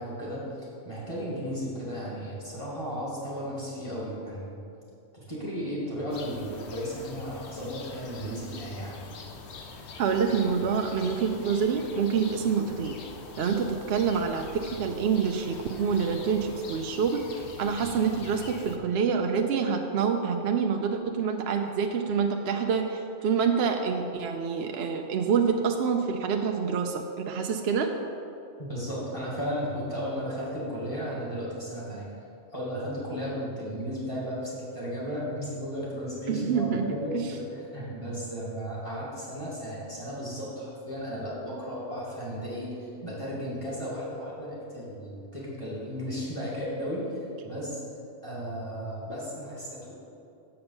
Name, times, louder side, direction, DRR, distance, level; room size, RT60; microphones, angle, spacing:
voice 1, 0.0-4.6 5.1-9.1 28.7-32.1 32.5-47.8 48.2-49.9, equal, 25° left, -7 dB, 2.4 m, -34 dB
sound 1, 6.1-18.8, left 4 dB, 60° left, 1.0 m, -44 dB
voice 2, 10.0-13.0 13.4-27.9 36.3-37.4, right 6 dB, 65° right, 4 dB, 0.7 m, -27 dB
6.8 x 5.6 x 6.9 m, 2.7 s
omnidirectional pair, 1.3 m